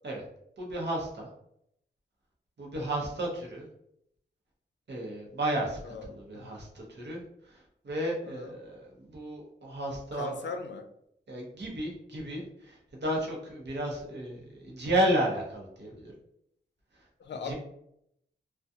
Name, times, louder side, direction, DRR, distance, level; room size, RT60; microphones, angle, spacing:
voice 1, 0.6-1.3 2.6-3.6 4.9-5.8 6.1-7.2 7.8-10.5 11.3-16.1 17.4-17.5, right 1 dB, 70° right, -2 dB, 0.8 m, -32 dB
voice 2, 5.8-6.5 8.3-8.5 10.1-10.9 17.2-17.5, left 4 dB, 75° left, 6 dB, 0.4 m, -39 dB
2.4 x 2.3 x 2.7 m, 0.74 s
cardioid pair, 65°, 18 cm